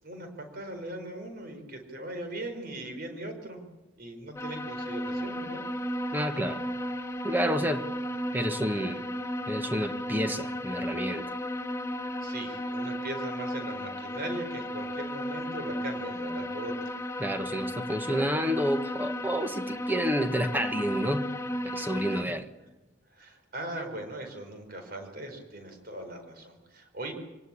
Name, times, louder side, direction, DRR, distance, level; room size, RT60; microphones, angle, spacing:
voice 1, 0.0-3.6 4.0-5.6 12.2-17.0 23.1-27.1, right 1 dB, 50° right, 4.7 m, -39 dB
sound 1, 4.4-22.2, equal, 15° left, 0.9 m, -34 dB
voice 2, 6.1-6.6 7.2-7.9 8.3-9.0 9.5-11.2 17.2-21.3 21.6-22.4, equal, 10° right, 1.3 m, -29 dB
25.0 x 18.0 x 8.6 m
head